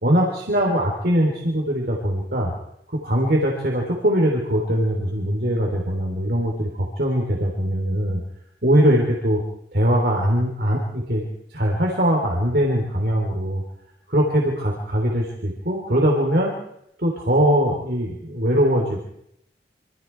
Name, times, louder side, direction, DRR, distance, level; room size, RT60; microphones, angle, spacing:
voice 1, 0.0-2.5 2.9-8.2 8.6-9.4 9.7-11.3 11.5-13.6 14.1-16.6 17.0-19.0, equal, 60° right, 0 dB, 3.5 m, -21 dB
26.5 x 25.0 x 4.6 m, 0.78 s
head